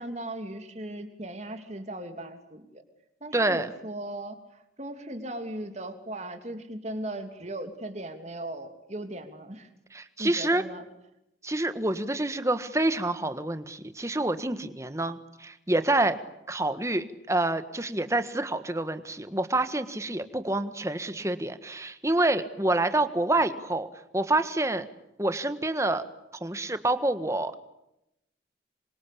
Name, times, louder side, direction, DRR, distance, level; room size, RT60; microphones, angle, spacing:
voice 1, 0.0-2.8 3.2-9.7 10.2-10.8, right 1 dB, 35° right, 7 dB, 2.9 m, -38 dB
voice 2, 3.3-3.7 9.9-10.6 11.4-16.2 16.5-23.9 24.1-24.8 25.2-26.0 26.4-27.5, right 2 dB, 15° right, 10 dB, 1.5 m, -27 dB
27.5 x 25.0 x 8.6 m, 0.86 s
head